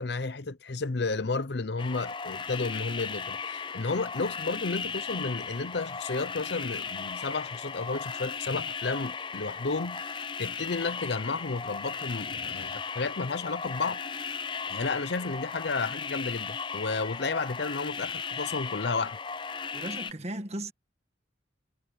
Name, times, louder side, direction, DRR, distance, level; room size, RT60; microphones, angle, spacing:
voice 1, 0.0-10.1 10.4-14.0 14.7-19.2, left 3 dB, 60° left, 0.7 m, -32 dB
sound 1, 1.8-20.1, left 5 dB, 25° left, 0.5 m, -36 dB
voice 2, 19.7-20.7, right 1 dB, 35° right, 1.6 m, -36 dB
head